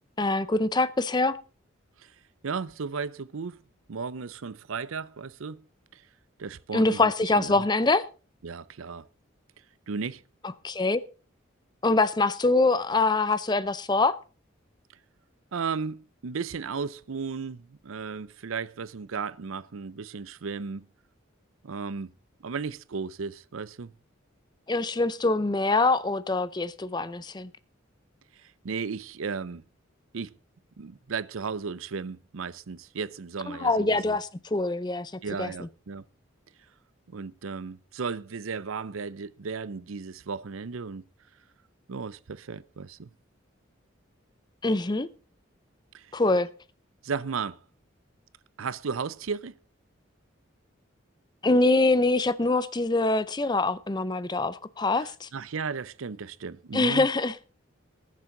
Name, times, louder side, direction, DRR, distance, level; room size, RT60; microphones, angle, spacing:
voice 1, 0.2-1.4 6.7-8.0 10.6-11.0 11.8-14.2 24.7-27.5 33.5-35.1 35.4-35.7 44.6-45.1 46.1-46.5 51.4-55.3 56.7-57.4, left 2 dB, 20° left, 0.5 m, -24 dB
voice 2, 2.4-3.6 3.9-5.6 5.9-6.0 6.4-7.6 8.4-9.1 9.9-10.2 15.5-20.8 21.6-22.1 22.4-23.9 28.3-29.6 30.1-30.3 30.8-34.2 35.2-36.0 37.1-41.0 41.9-43.1 45.9-46.1 47.0-47.6 48.6-49.6 55.0-57.1, right 5 dB, 85° right, 0.6 m, -35 dB
19.5 x 7.5 x 3.8 m
head